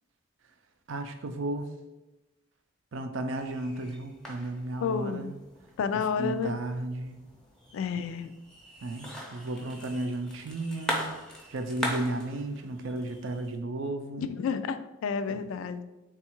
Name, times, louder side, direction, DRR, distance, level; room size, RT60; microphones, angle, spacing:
voice 1, 0.9-1.7 2.9-5.4 5.9-7.2 8.8-11.0 11.5-14.3 15.3-15.5, right 2 dB, 75° right, 7 dB, 0.4 m, -34 dB
sound 1, 3.3-13.6, equal, 5° left, 0.5 m, -40 dB
voice 2, 4.8-5.3 5.8-6.6 7.7-8.3 14.2-15.8, left 6 dB, 85° left, 12 dB, 0.3 m, -30 dB
3.5 x 2.4 x 4.3 m, 1.0 s
head